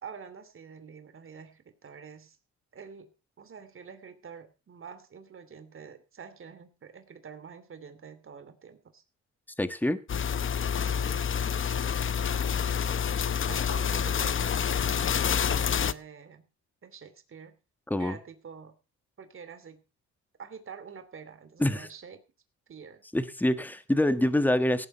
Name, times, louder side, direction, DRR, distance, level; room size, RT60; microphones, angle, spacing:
voice 1, 0.0-2.4 2.7-3.1 3.4-9.0 10.7-11.3 12.1-12.9 13.5-15.1 15.4-16.5 16.8-17.6 18.0-18.8 19.2-19.8 20.4-22.2 22.7-23.0, right 6 dB, 45° right, 2.8 m, -47 dB
voice 2, 9.6-10.0 17.9-18.2 21.6-21.9 23.1-24.9, left 1 dB, 5° left, 1.4 m, -25 dB
sound 1, 10.1-15.9, left 7 dB, 40° left, 0.9 m, -28 dB
17.5 x 7.4 x 5.6 m
cardioid pair, 90°, 30 cm